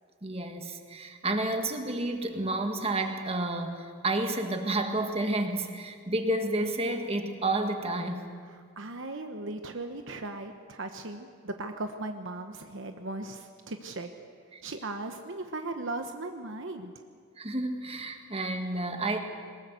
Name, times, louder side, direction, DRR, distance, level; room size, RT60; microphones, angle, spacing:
voice 1, 0.2-8.3 14.5-14.6 17.4-19.2, right 2 dB, 30° right, 5 dB, 1.8 m, -30 dB
voice 2, 8.5-14.1 14.6-16.9, right 2 dB, 60° right, 6 dB, 1.1 m, -37 dB
22.0 x 20.0 x 8.1 m, 2.1 s
head